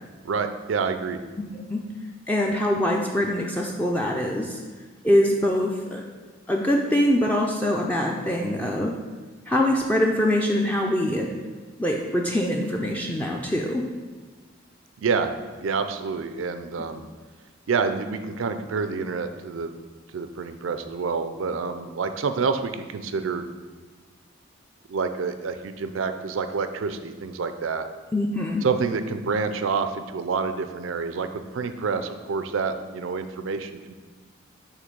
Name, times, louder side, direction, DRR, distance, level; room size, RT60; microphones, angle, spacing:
voice 1, 0.2-1.2 15.0-15.3 15.6-17.0 17.7-19.7 20.1-23.5 24.9-27.9 28.6-33.9, right 5 dB, 85° right, 9 dB, 0.4 m, -28 dB
voice 2, 2.3-4.6 5.0-6.0 6.5-8.9 9.5-11.3 11.8-13.9 28.1-28.6, left 1 dB, 10° left, -1 dB, 0.4 m, -23 dB
6.5 x 3.1 x 5.2 m, 1.4 s
head